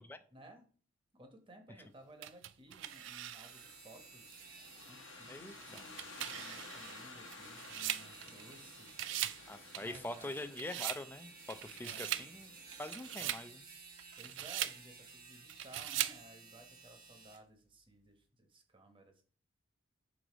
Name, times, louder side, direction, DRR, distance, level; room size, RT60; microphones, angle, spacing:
voice 1, 0.3-0.6 1.1-4.6 4.8-9.4 9.8-10.4 11.8-12.3 13.1-13.3 14.2-19.2, right 1 dB, 25° right, 5 dB, 1.1 m, -58 dB
sound 1, 2.2-3.8 4.3-4.4 5.6-8.6 8.9-9.4 9.7-11.0 11.5-12.3 12.7-13.5 14.0-14.8 15.5-16.2, right 13 dB, 65° right, 0.3 m, -40 dB
sound 2, 2.7-17.4, right 4 dB, 45° right, 1.3 m, -55 dB
sound 3, 3.5-13.3, left 4 dB, 70° left, 1.0 m, -55 dB
voice 2, 5.3-5.9 9.5-12.5 12.8-13.6, left 2 dB, 10° left, 9 dB, 0.4 m, -44 dB
6.2 x 3.9 x 5.0 m, 0.42 s
head